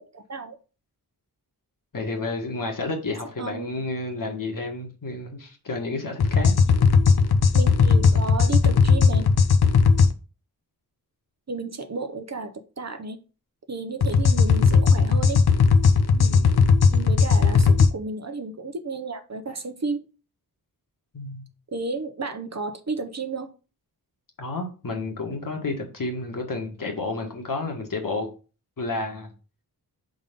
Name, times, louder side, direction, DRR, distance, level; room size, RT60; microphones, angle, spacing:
voice 1, 0.1-0.6 3.4-3.7 7.5-9.3 11.5-13.2 13.7-15.4 16.1-16.3 16.9-20.1 21.7-23.5, right 3 dB, 45° right, 0.8 m, -32 dB
voice 2, 1.9-6.6 16.2-16.6 21.1-21.4 24.4-28.3 28.8-29.3, left 3 dB, 55° left, 1.7 m, -31 dB
sound 1, 6.2-10.1 14.0-17.9, left 5 dB, 75° left, 0.7 m, -17 dB
5.2 x 4.1 x 5.2 m
wide cardioid pair, 115°, 38 cm